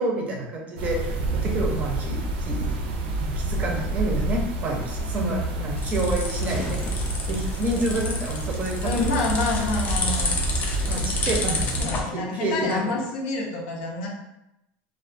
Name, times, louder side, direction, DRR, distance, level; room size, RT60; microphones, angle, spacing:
voice 1, 0.0-2.7 3.2-6.8 7.3-9.3 10.9-13.0, right 1 dB, 30° right, 0 dB, 0.5 m, -29 dB
sound 1, 0.8-11.8, right 2 dB, 90° right, 0.4 m, -28 dB
sound 2, 5.3-12.0, left 3 dB, 30° left, 0.4 m, -30 dB
sound 3, 6.2-10.2, equal, 5° left, 0.7 m, -42 dB
voice 2, 8.8-10.4 11.8-14.1, left 3 dB, 85° left, -1 dB, 0.6 m, -28 dB
2.2 x 2.2 x 2.5 m, 0.88 s
cardioid pair, 160°, 5 cm